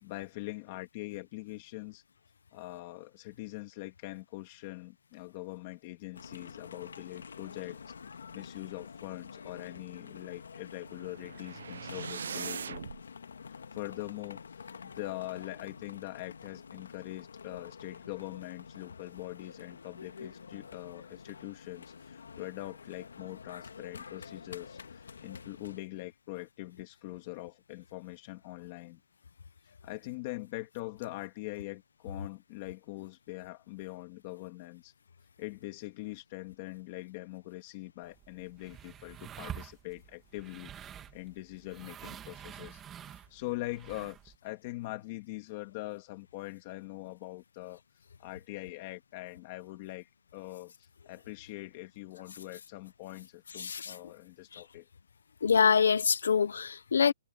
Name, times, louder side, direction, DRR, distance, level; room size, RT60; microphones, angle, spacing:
voice 1, 0.0-2.0 2.5-7.8 8.3-12.8 13.7-29.0 29.8-34.9 35.4-47.8 48.2-54.8, left 19 dB, 20° left, 2.3 m, -43 dB
sound 1, 6.1-25.8, left 6 dB, 85° left, 1.6 m, -48 dB
sound 2, 10.8-13.0, right 6 dB, 60° right, 0.7 m, -41 dB
sound 3, 38.0-44.4, right 10 dB, 10° right, 1.7 m, -47 dB
voice 2, 53.6-53.9 55.4-57.1, left 6 dB, 65° left, 0.8 m, -25 dB
hypercardioid pair, 180°, 0 cm